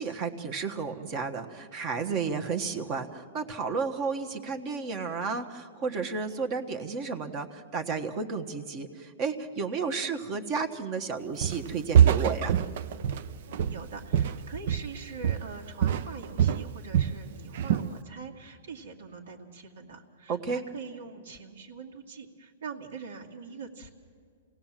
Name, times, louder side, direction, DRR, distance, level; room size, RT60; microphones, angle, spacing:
voice 1, 0.0-12.6 20.3-20.6, right 5 dB, 30° right, 6 dB, 1.3 m, -32 dB
Walk footsteps, 11.4-11.7 11.9-15.0 15.2-15.6 15.8-17.2 17.5-17.9, right 9 dB, 55° right, 0.7 m, -24 dB
voice 2, 13.5-23.9, right 5 dB, 75° right, 0 dB, 2.4 m, -43 dB
27.5 x 17.5 x 7.5 m, 2.2 s
hypercardioid pair, 150°, 0 cm